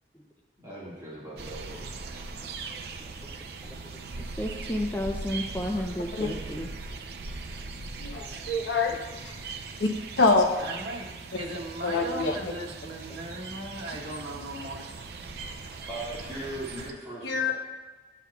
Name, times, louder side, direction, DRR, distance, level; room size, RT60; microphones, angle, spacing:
voice 1, 0.6-1.9 15.9-17.5, right 1 dB, 20° right, -9 dB, 1.8 m, -39 dB
sound 1, 1.4-16.9, right 3 dB, 65° right, 0.5 m, -40 dB
voice 2, 4.2-6.7 13.1-13.4, left 1 dB, 10° left, 1 dB, 0.4 m, -32 dB
voice 3, 8.0-9.0 9.8-9.9 10.2-10.5 11.8-12.4 17.2-17.5, left 3 dB, 90° left, 3 dB, 0.8 m, -24 dB
voice 4, 10.6-14.9, right 1 dB, 90° right, -1 dB, 1.2 m, -38 dB
10.0 x 7.3 x 2.3 m, 1.2 s
head